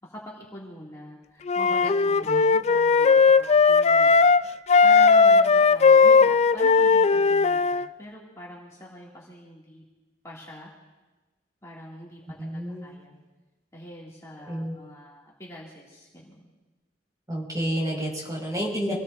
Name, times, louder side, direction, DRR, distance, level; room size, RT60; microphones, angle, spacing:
voice 1, 0.0-4.4 4.8-9.8 10.2-10.7 11.6-13.2 13.7-16.5, equal, 20° left, -6 dB, 2.5 m, -44 dB
Wind instrument woodwind instrument, 1.5-4.4 4.7-7.8, left 5 dB, 40° left, 0.4 m, -18 dB
voice 2, 12.4-12.8 14.5-14.7 17.3-18.9, equal, 20° right, -2 dB, 5.5 m, -30 dB
26.5 x 18.5 x 2.7 m, 1.2 s
head